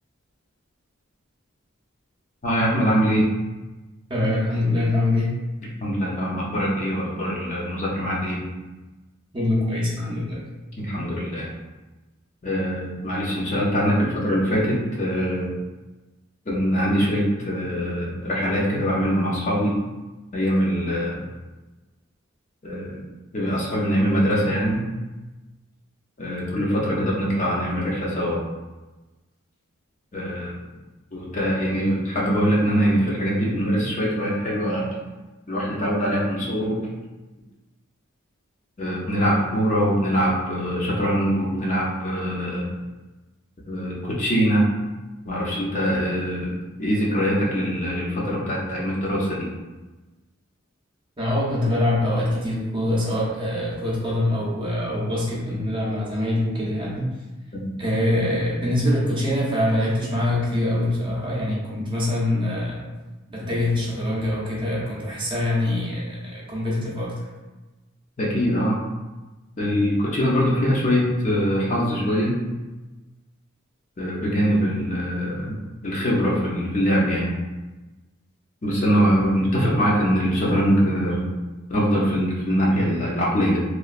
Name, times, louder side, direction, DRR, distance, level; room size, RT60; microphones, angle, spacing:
voice 1, 2.4-3.2 5.8-8.4 10.8-11.5 12.4-15.5 16.5-19.7 20.3-21.2 22.6-23.0 23.3-24.8 26.2-28.4 30.1-30.6 31.1-34.9 35.5-36.8 38.8-42.7 43.7-44.6 45.3-49.5 57.5-57.8 68.2-68.8 69.6-72.4 74.0-75.6 75.8-77.3 78.6-81.3 81.7-83.6, equal, 35° left, -4 dB, 0.5 m, -23 dB
voice 2, 4.1-5.3 9.3-10.4 51.2-57.1 57.8-62.8 63.3-67.3 79.5-79.8, left 1 dB, 25° right, -5 dB, 0.6 m, -24 dB
3.0 x 2.2 x 2.4 m, 1.1 s
head